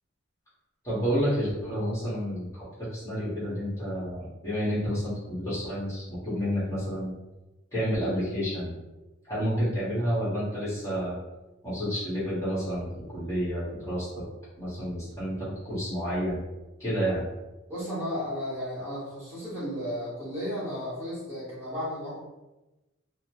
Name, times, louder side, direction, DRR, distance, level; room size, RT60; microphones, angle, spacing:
voice 1, 0.8-2.6 2.9-7.1 7.7-8.7 9.2-11.1 11.6-14.2 14.6-15.3 15.6-16.4 16.8-17.3, equal, 15° left, -11 dB, 1.1 m, -30 dB
voice 2, 17.7-22.2, equal, 10° right, -11 dB, 1.1 m, -34 dB
2.8 x 2.1 x 2.9 m, 1.0 s
head